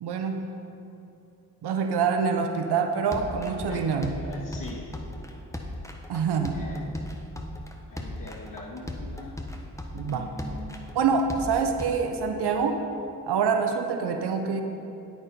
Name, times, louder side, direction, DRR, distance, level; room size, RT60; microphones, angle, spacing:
voice 1, 0.0-0.5 1.6-4.1 6.1-6.6 9.9-10.2 10.9-12.8 13.3-14.6, right 5 dB, 80° right, 5 dB, 0.8 m, -26 dB
sound 1, 3.1-11.9, left 1 dB, 10° left, 1.2 m, -37 dB
voice 2, 3.7-4.8 6.5-6.9 7.9-9.4 10.1-10.7, left 2 dB, 55° left, -4 dB, 2.5 m, -42 dB
9.0 x 8.6 x 5.1 m, 2.8 s
supercardioid pair, 40°, 39 cm